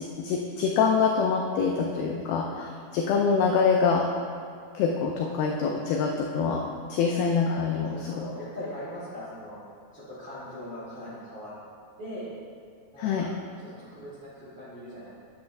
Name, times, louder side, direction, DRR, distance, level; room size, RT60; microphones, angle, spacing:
voice 1, 0.0-4.1 4.7-6.6 6.9-8.2 13.0-13.3, left 5 dB, 90° left, 0 dB, 2.1 m, -25 dB
voice 2, 7.8-9.6 9.9-11.5 12.0-12.3 12.9-13.3 13.6-15.1, equal, 55° right, -11 dB, 1.3 m, -40 dB
9.8 x 8.2 x 2.6 m, 2.2 s
omnidirectional pair, 4.9 m